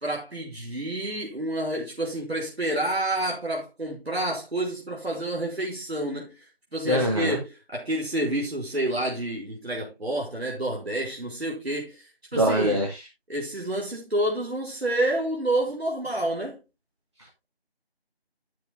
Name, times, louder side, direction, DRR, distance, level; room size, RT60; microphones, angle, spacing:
voice 1, 0.0-6.4 6.7-7.4 7.7-12.1 12.3-12.8 13.3-16.6, right 1 dB, 80° right, 3.7 m, -29 dB
voice 2, 6.8-7.4 12.3-13.1, equal, 25° right, 1.8 m, -24 dB
14.0 x 6.2 x 2.7 m
figure-of-eight pair, 175°, 31 cm